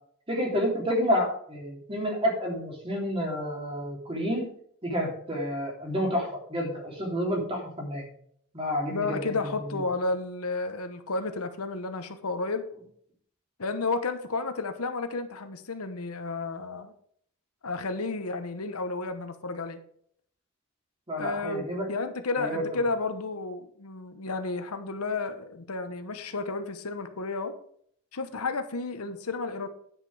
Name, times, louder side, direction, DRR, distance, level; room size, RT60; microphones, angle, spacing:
voice 1, 0.3-4.5 4.8-8.1 8.5-9.8 21.1-21.9 22.4-22.6, equal, 25° right, -1 dB, 3.2 m, -29 dB
voice 2, 8.9-12.7 13.6-16.9 17.6-19.8 21.2-27.5 28.1-29.7, left 3 dB, 85° left, 9 dB, 1.1 m, -32 dB
9.8 x 6.6 x 4.9 m, 0.63 s
head